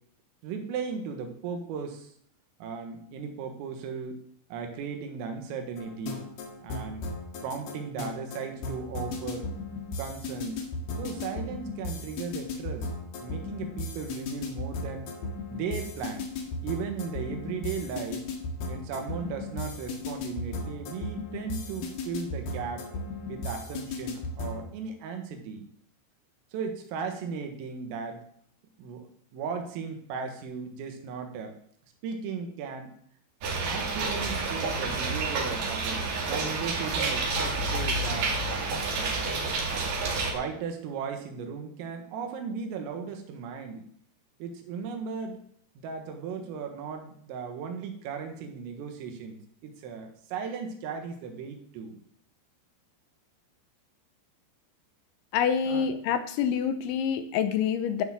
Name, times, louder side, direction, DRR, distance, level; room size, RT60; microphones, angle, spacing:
voice 1, 0.4-2.1 2.6-4.2 4.5-6.3 6.6-7.1 7.4-9.5 10.0-10.7 11.0-12.9 13.2-15.1 15.5-16.3 16.6-18.3 18.7-22.9 23.3-25.7 26.5-28.2 28.8-29.1 29.3-31.6 32.0-32.9 33.7-38.3 39.0-39.2 40.3-43.9 44.4-45.4 45.8-49.4 49.6-52.0 55.6-55.9, right 6 dB, 85° right, 5 dB, 4.3 m, -36 dB
sound 1, 5.8-24.7, left 3 dB, 60° left, 3.2 m, -36 dB
sound 2, 33.4-40.3, right 3 dB, 50° right, 3.1 m, -29 dB
voice 2, 55.3-58.0, left 7 dB, 75° left, 9 dB, 3.0 m, -27 dB
12.5 x 6.1 x 7.4 m, 0.64 s
omnidirectional pair, 5.8 m